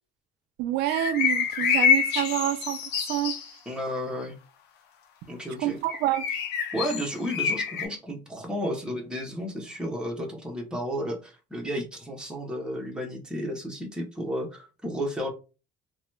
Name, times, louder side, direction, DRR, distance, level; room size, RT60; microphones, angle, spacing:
voice 1, 0.6-3.4 5.6-6.3, right 14 dB, 85° right, 0.4 m, -27 dB
sound 1, 0.9-3.5 5.9-7.9, left 7 dB, 85° left, 0.6 m, -26 dB
voice 2, 3.7-4.4 5.3-5.8 6.7-15.3, equal, 5° right, 0.9 m, -32 dB
2.9 x 2.2 x 3.1 m
cardioid pair, 110°, 17 cm